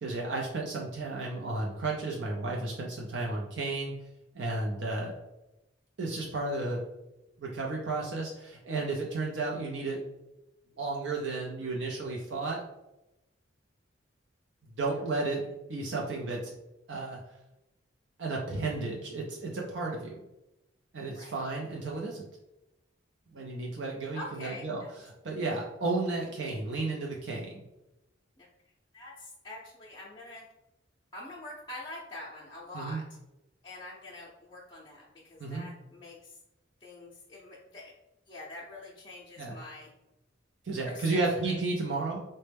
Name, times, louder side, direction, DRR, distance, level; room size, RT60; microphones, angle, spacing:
voice 1, 0.0-3.9 4.3-5.1 6.0-6.8 7.4-10.0 10.8-12.6 14.8-16.5 16.9-17.2 18.2-20.2 20.9-22.3 23.3-27.6 32.7-33.0 35.4-35.7 39.4-39.6 40.6-42.2, right 3 dB, 65° right, -2 dB, 0.5 m, -33 dB
voice 2, 24.1-24.9 28.4-28.5 28.9-30.4 31.1-33.0 33.6-36.4 36.8-37.9 38.3-39.9 40.9-41.5, left 2 dB, 25° left, -6 dB, 0.5 m, -45 dB
4.0 x 2.1 x 3.3 m, 0.92 s
head